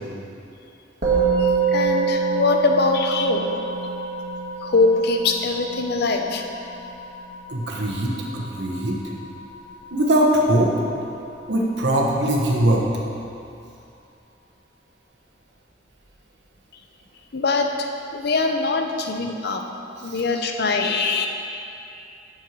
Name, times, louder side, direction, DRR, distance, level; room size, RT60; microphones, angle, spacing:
Musical instrument, 1.0-10.5, right 4 dB, 45° right, 1.9 m, -26 dB
voice 1, 1.4-3.5 4.6-6.4 17.3-17.7 18.1-19.6 20.0-21.3, left 3 dB, 60° left, 4 dB, 0.7 m, -22 dB
voice 2, 7.5-9.0 9.9-10.7 11.5-12.8 20.0-20.2, right 1 dB, 70° right, -2 dB, 1.2 m, -21 dB
6.5 x 6.1 x 7.5 m, 2.7 s
head